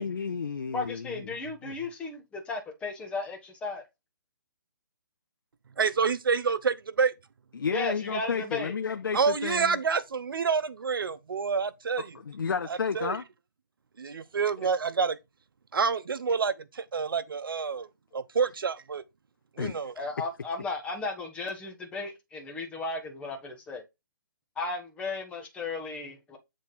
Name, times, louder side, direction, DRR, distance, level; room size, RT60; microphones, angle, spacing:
voice 1, 0.0-1.3 1.6-1.7 7.5-9.8 12.1-13.2 19.6-19.9, left 6 dB, 80° left, 0.7 m, -32 dB
voice 2, 0.7-3.8 7.7-8.7 19.9-23.8 24.6-26.4, left 3 dB, 10° left, 1.3 m, -35 dB
voice 3, 5.8-7.1 9.1-12.1 12.9-13.2 14.0-15.2 15.7-17.9 18.1-19.0 19.6-19.9, right 5 dB, 80° right, 0.8 m, -28 dB
7.5 x 3.5 x 4.2 m
hypercardioid pair, 150°, 11 cm